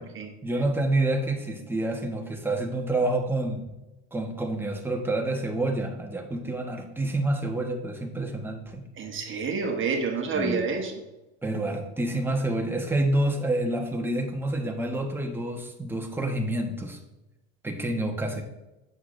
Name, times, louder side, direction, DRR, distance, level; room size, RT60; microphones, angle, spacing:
voice 1, 0.4-3.6 4.1-8.9 10.3-10.6 11.4-17.0 17.6-18.4, right 1 dB, 5° right, 2 dB, 1.0 m, -28 dB
voice 2, 9.0-10.9, right 4 dB, 35° right, 4 dB, 1.1 m, -28 dB
7.8 x 6.5 x 2.5 m, 1.0 s
supercardioid pair, 105°, 37 cm